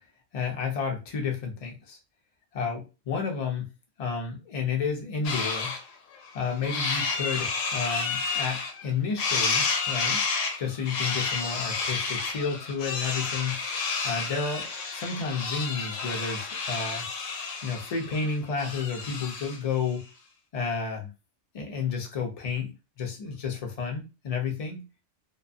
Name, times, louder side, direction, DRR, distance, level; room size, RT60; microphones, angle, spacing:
voice 1, 0.3-2.0 2.5-3.7 4.0-5.7 6.3-10.2 10.6-13.6 14.0-17.1 17.6-20.0 20.5-21.1 21.5-24.8, left 5 dB, 45° left, 2 dB, 0.5 m, -31 dB
sound 1, 5.2-5.8 6.2-8.9 9.2-19.6, left 4 dB, 80° left, 0.9 m, -30 dB
2.6 x 2.2 x 2.5 m, 0.29 s
omnidirectional pair, 1.3 m